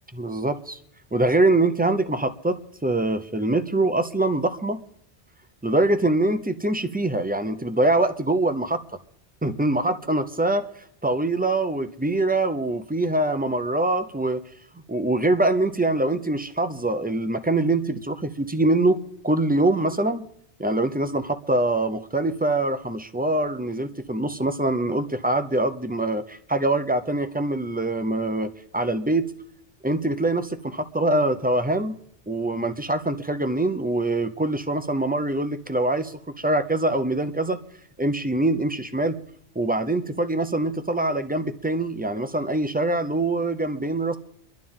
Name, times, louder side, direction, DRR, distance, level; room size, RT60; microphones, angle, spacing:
voice 1, 0.1-0.8 1.1-4.8 5.6-8.8 9.4-10.7 11.0-14.4 14.9-20.3 20.6-29.3 29.8-32.0 32.3-37.6 38.0-39.2 39.6-44.2, right 2 dB, 10° right, 9 dB, 0.4 m, -24 dB
24.5 x 11.5 x 3.7 m, 0.72 s
omnidirectional pair, 1.1 m